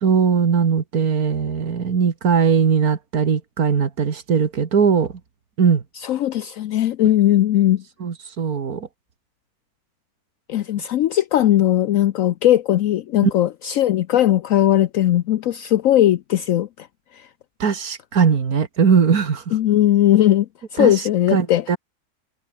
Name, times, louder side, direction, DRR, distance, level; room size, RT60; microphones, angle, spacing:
voice 1, 0.0-5.1 5.6-5.8 8.0-8.9 13.2-13.3 17.6-19.5 20.8-20.9 21.3-21.8, right 6 dB, 75° right, 2.3 m, -19 dB
voice 2, 6.0-7.8 10.5-16.9 17.2-17.3 19.5-21.6, left 12 dB, 70° left, 1.0 m, -18 dB
omnidirectional pair, 1.6 m